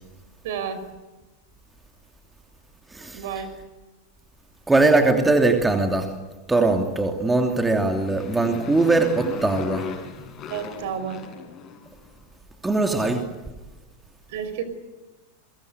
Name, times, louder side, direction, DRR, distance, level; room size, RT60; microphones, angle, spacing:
voice 1, 0.4-0.8 3.1-3.5 10.5-11.2 14.3-14.6, right 8 dB, 55° right, 12 dB, 5.1 m, -30 dB
voice 2, 2.9-3.2 4.7-6.1 6.5-9.9 12.6-13.3, right 3 dB, 10° right, 4 dB, 2.9 m, -21 dB
Motorcycle, 7.5-12.1, left 7 dB, 30° left, 6.7 m, -36 dB
29.5 x 23.5 x 8.2 m, 1.1 s
figure-of-eight pair, 90°, 0 cm